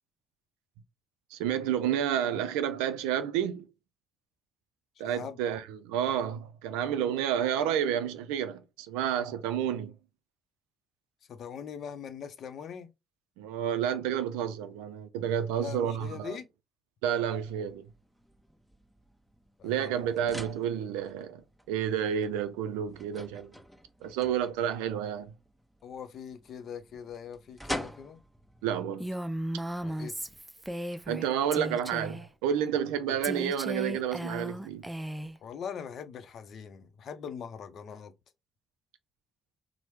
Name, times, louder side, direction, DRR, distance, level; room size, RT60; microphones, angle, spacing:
voice 1, 1.3-3.7 5.0-10.0 13.4-16.4 17.0-17.8 19.6-23.5 24.0-25.3 28.6-29.1 31.1-34.9, right 9 dB, 90° right, 0.3 m, -30 dB
voice 2, 5.0-5.4 11.3-12.9 15.6-16.5 19.6-19.9 25.8-28.2 29.8-30.2 33.1-33.2 35.4-38.1, left 7 dB, 65° left, 0.5 m, -41 dB
sound 1, 17.5-30.4, equal, 5° left, 0.8 m, -46 dB
Female speech woman speaking, 29.0-31.3 31.5-32.3 33.2-35.4, right 1 dB, 10° right, 0.3 m, -36 dB
3.0 x 2.0 x 3.2 m
hypercardioid pair, 55°, 0 cm